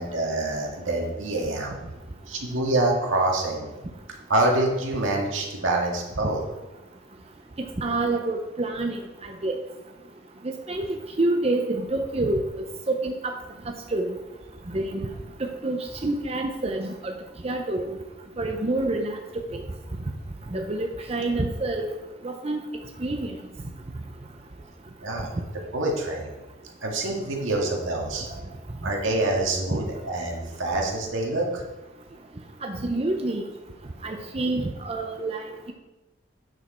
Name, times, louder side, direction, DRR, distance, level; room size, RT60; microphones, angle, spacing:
voice 1, 0.0-1.8 2.3-3.7 4.3-6.4 25.0-25.3 25.7-26.3 26.8-28.3 28.8-31.6, right 2 dB, 85° right, -1 dB, 2.0 m, -26 dB
voice 2, 7.8-9.0 9.2-9.6 10.7-12.4 12.9-13.3 13.9-14.2 14.7-15.1 15.4-17.1 17.4-17.9 18.4-19.2 19.5-19.6 20.5-21.9 22.2-22.6 23.0-23.3 32.6-33.4 34.0-35.7, right 2 dB, 30° right, 3 dB, 0.6 m, -27 dB
8.9 x 6.6 x 4.3 m, 1.1 s
head